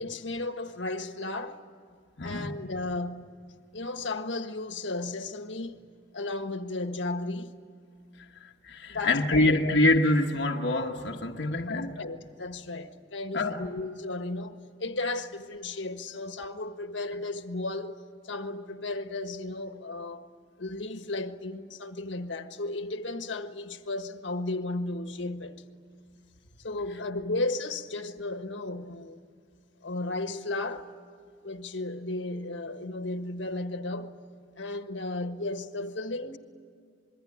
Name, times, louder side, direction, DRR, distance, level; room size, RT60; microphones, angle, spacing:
voice 1, 0.0-1.6 2.2-3.4 3.7-5.8 6.1-7.6 8.9-9.8 11.7-17.9 18.2-20.2 20.6-25.6 26.6-29.2 29.8-30.9 31.4-34.2 34.6-36.4, left 2 dB, 85° left, 1.5 m, -34 dB
voice 2, 2.2-2.5 8.6-11.9 13.3-13.7, left 1 dB, 70° left, 1.3 m, -25 dB
26.0 x 22.5 x 9.7 m
head